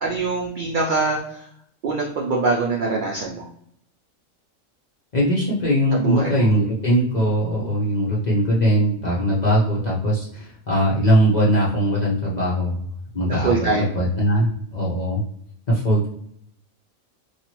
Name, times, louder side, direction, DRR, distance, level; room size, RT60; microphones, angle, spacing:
voice 1, 0.0-1.5 1.8-3.5 6.0-6.5 13.3-14.0, right 3 dB, 70° right, -2 dB, 0.4 m, -24 dB
voice 2, 5.1-12.9 13.1-15.2 15.7-16.1, equal, 45° left, -6 dB, 0.6 m, -20 dB
3.0 x 2.4 x 2.9 m, 0.70 s
omnidirectional pair, 1.4 m